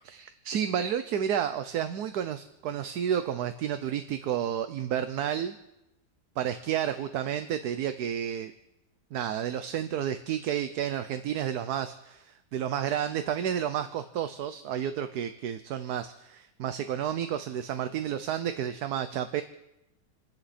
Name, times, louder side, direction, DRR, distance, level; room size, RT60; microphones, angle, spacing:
voice 1, 0.0-5.5 6.4-8.5 9.1-19.4, right 9 dB, 70° right, 10 dB, 1.3 m, -31 dB
29.5 x 10.0 x 4.3 m, 0.91 s
omnidirectional pair, 1.8 m